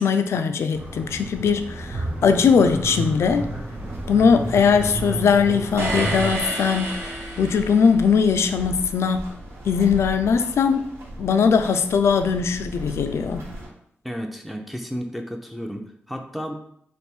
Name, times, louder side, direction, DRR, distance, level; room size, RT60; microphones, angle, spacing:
voice 1, 0.0-3.5 4.1-7.1 7.4-9.2 9.6-10.9 11.2-13.4, left 6 dB, 80° left, 8 dB, 0.3 m, -20 dB
sound 1, 0.7-6.4, right 1 dB, 45° right, 1.0 m, -32 dB
sound 2, 2.6-13.7, right 1 dB, 90° right, 1.1 m, -38 dB
sound 3, 5.8-8.0, right 2 dB, 65° right, 0.9 m, -29 dB
voice 2, 14.0-16.6, equal, ahead, 3 dB, 0.4 m, -32 dB
3.3 x 2.6 x 4.3 m, 0.68 s
wide cardioid pair, 110°, 5 cm